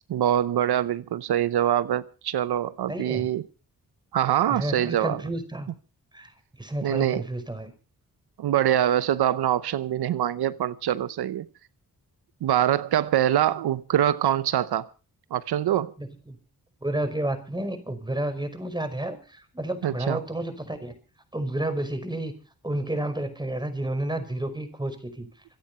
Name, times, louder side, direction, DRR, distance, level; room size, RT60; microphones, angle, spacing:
voice 1, 0.1-3.4 4.1-5.2 6.8-7.2 8.4-11.5 12.4-14.9 15.3-15.9 19.8-20.2, right 11 dB, 90° right, 0.8 m, -24 dB
voice 2, 2.9-3.3 4.5-5.7 6.1-6.3 6.6-7.7 16.0-16.4 16.8-20.9 21.3-22.3 22.6-25.3, right 1 dB, 10° right, 5.3 m, -31 dB
26.0 x 8.9 x 5.5 m
cardioid pair, 70°, 37 cm